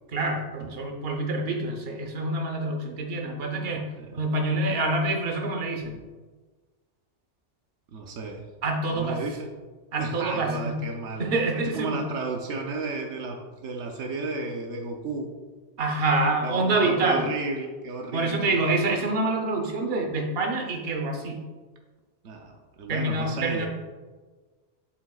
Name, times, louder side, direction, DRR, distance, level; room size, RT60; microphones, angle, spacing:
voice 1, 0.1-3.8 4.1-6.0 8.6-9.2 9.9-10.8 11.2-12.0 15.8-17.3 18.1-21.4 22.9-23.7, right 2 dB, 60° right, 2 dB, 1.2 m, -26 dB
voice 2, 7.9-8.4 8.9-9.5 10.0-11.3 11.6-15.4 16.4-18.7 22.2-23.7, right 3 dB, 85° right, 2 dB, 1.1 m, -33 dB
8.4 x 7.6 x 2.4 m, 1.4 s
omnidirectional pair, 1.2 m